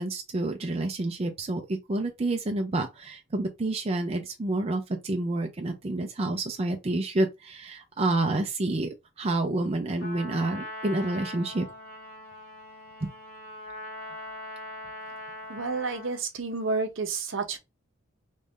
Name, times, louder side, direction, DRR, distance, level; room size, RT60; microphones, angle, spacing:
voice 1, 0.0-11.7 13.0-13.1, right 2 dB, 30° right, 0.5 m, -29 dB
Trumpet, 10.0-16.2, left 1 dB, 45° left, 1.5 m, -41 dB
voice 2, 15.5-17.6, right 4 dB, 65° right, 0.8 m, -30 dB
3.1 x 2.6 x 3.5 m
head